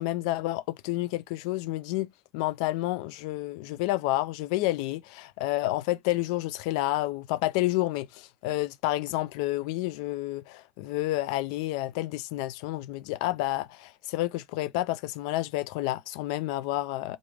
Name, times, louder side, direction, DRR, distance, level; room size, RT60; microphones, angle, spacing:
voice 1, 0.0-2.1 2.3-17.2, left 17 dB, 85° left, 0.3 m, -30 dB
3.2 x 2.5 x 3.3 m
cardioid pair, 125°, 4 cm